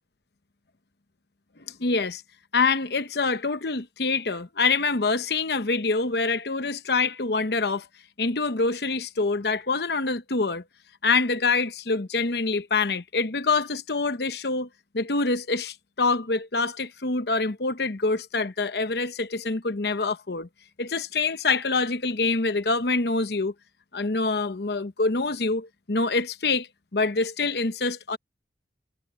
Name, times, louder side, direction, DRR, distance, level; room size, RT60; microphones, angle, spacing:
voice 1, 1.8-2.2 2.5-7.9 8.2-10.6 11.0-14.7 14.9-20.5 20.8-23.5 23.9-28.2, left 3 dB, 60° left, 0.9 m, -25 dB
head